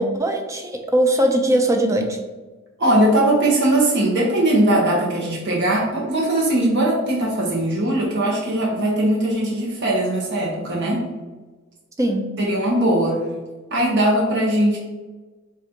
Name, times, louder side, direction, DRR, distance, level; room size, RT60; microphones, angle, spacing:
voice 1, 0.0-2.2 12.0-12.3, right 1 dB, 15° right, 4 dB, 0.4 m, -20 dB
voice 2, 2.8-11.1 12.4-13.2 13.7-14.8, right 1 dB, 55° right, -3 dB, 0.9 m, -20 dB
3.9 x 2.5 x 4.3 m, 1.2 s
head